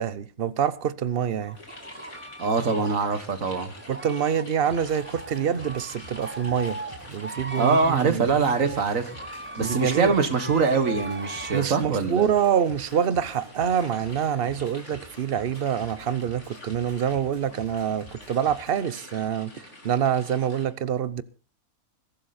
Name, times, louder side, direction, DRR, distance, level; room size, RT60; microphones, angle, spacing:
voice 1, 0.0-1.6 3.9-6.8 7.1-8.3 9.6-10.1 11.5-21.2, right 8 dB, 45° right, 1.0 m, -26 dB
sound 1, 1.4-11.7, right 2 dB, 10° right, 0.7 m, -39 dB
sound 2, 1.5-20.6, left 1 dB, 55° left, 4.1 m, -48 dB
voice 2, 2.4-3.7 7.6-9.1 9.6-12.3, right 4 dB, 70° right, 2.0 m, -23 dB
sound 3, 4.7-18.9, right 1 dB, 30° right, 3.9 m, -49 dB
21.5 x 12.0 x 4.3 m
omnidirectional pair, 1.5 m